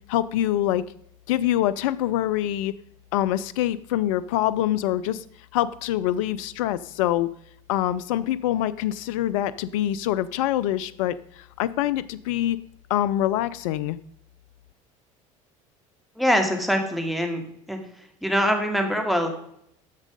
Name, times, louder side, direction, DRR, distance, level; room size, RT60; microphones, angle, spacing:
voice 1, 0.1-0.8 1.3-2.7 3.1-5.2 5.5-7.3 7.7-12.6 12.9-14.0, left 13 dB, 75° left, 16 dB, 0.5 m, -25 dB
voice 2, 16.2-17.8 18.2-19.3, equal, ahead, 4 dB, 2.5 m, -23 dB
10.5 x 7.2 x 5.2 m, 0.72 s
hypercardioid pair, 75°, 17 cm